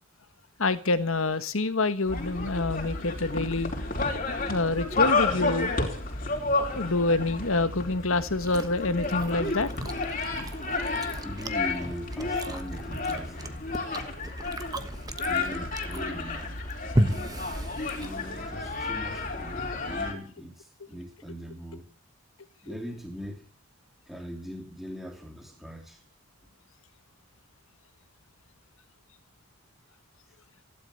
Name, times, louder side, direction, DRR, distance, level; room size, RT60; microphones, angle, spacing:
voice 1, 0.6-3.7 4.3-5.7 6.7-9.7, left 2 dB, 70° left, 12 dB, 1.5 m, -27 dB
sound 1, 2.1-20.1, left 3 dB, 40° left, 4.1 m, -31 dB
Chewing mastication, 8.3-18.5, right 1 dB, 15° right, 1.2 m, -35 dB
voice 2, 11.2-13.7 15.2-16.5 17.9-21.9 22.6-23.5 24.1-26.0, equal, ahead, 0 dB, 3.1 m, -40 dB
15.5 x 12.0 x 6.6 m, 0.40 s
head